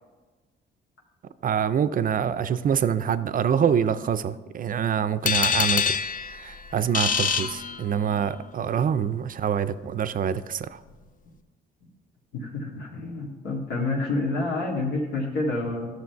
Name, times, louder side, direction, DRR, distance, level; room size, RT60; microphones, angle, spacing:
voice 1, 1.4-6.0 6.3-10.8, right 8 dB, 45° right, 13 dB, 0.5 m, -25 dB
sound 1, 5.3-8.3, left 6 dB, 45° left, 0.6 m, -26 dB
voice 2, 12.3-15.9, left 2 dB, 85° left, -2 dB, 1.9 m, -28 dB
11.5 x 6.4 x 4.6 m, 1.3 s
cardioid pair, 90°, 20 cm